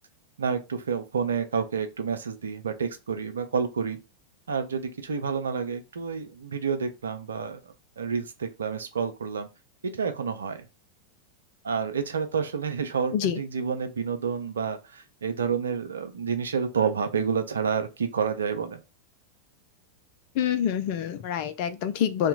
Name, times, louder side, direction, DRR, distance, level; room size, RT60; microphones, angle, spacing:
voice 1, 0.4-4.0 4.5-9.5 9.8-10.7 11.6-18.8, right 6 dB, 70° right, 0.5 m, -29 dB
voice 2, 20.3-22.3, left 9 dB, 45° left, 0.4 m, -26 dB
2.8 x 2.2 x 4.0 m
figure-of-eight pair, 90°, 0 cm